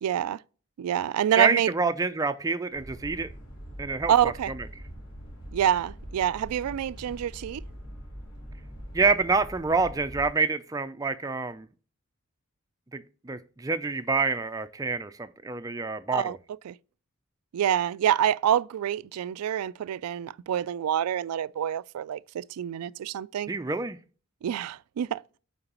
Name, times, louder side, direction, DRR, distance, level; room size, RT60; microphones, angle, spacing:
voice 1, 0.0-0.4 0.8-1.7 4.1-4.5 5.5-7.6 16.1-16.4 16.6-16.7 17.5-23.5 24.4-25.2, right 10 dB, 90° right, 0.3 m, -26 dB
voice 2, 1.4-3.3 3.8-4.1 8.9-11.7 12.9-16.4 23.5-24.0, right 4 dB, 15° right, 0.4 m, -27 dB
sound 1, 2.7-10.3, equal, 80° left, 2.6 m, -43 dB
8.8 x 3.9 x 2.9 m
head